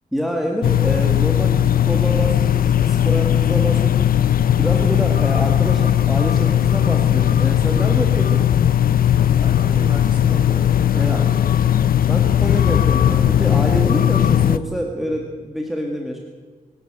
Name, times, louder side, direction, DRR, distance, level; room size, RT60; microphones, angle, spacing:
voice 1, 0.1-4.1 4.6-8.4 10.9-11.3 12.1-16.2, equal, ahead, 1 dB, 2.2 m, -26 dB
sound 1, 0.6-14.6, left 10 dB, 75° left, 0.9 m, -17 dB
voice 2, 9.2-11.8, right 1 dB, 30° right, 0 dB, 7.4 m, -35 dB
24.0 x 13.0 x 9.1 m, 1.5 s
wide cardioid pair, 150°, 15 cm